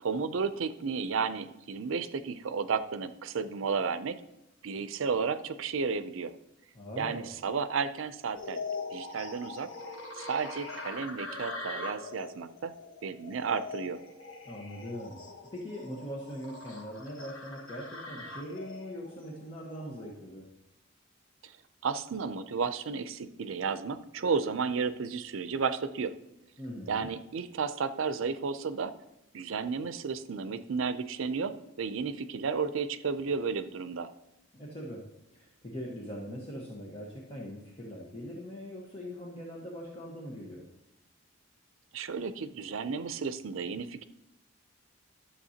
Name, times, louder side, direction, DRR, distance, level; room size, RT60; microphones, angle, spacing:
voice 1, 0.0-4.2 4.6-6.3 7.0-8.6 8.9-9.7 10.2-12.7 13.0-14.0 21.4-21.5 21.8-26.2 26.9-29.0 29.3-34.1 41.9-44.0, right 5 dB, 75° right, 12 dB, 0.5 m, -33 dB
voice 2, 6.7-7.3 14.4-15.2 15.5-20.5 26.6-27.1 34.5-35.0 35.3-40.6, equal, 25° left, -4 dB, 1.2 m, -41 dB
sound 1, 8.4-20.1, left 3 dB, 70° left, 1.2 m, -42 dB
12.5 x 7.1 x 2.8 m, 0.88 s
head